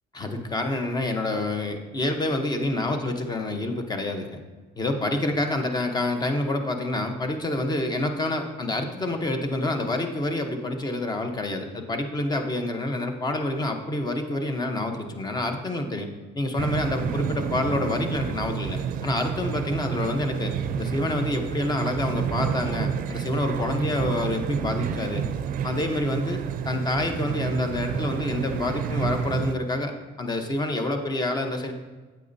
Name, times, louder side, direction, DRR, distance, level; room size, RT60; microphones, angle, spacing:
voice 1, 0.1-4.4 4.8-16.1 16.3-25.2 25.6-29.9 30.2-31.7, left 2 dB, 25° left, 5 dB, 0.9 m, -27 dB
sound 1, 16.6-29.5, right 7 dB, 55° right, 0.5 m, -29 dB
8.8 x 8.3 x 2.7 m, 1.3 s
cardioid pair, 110°, 17 cm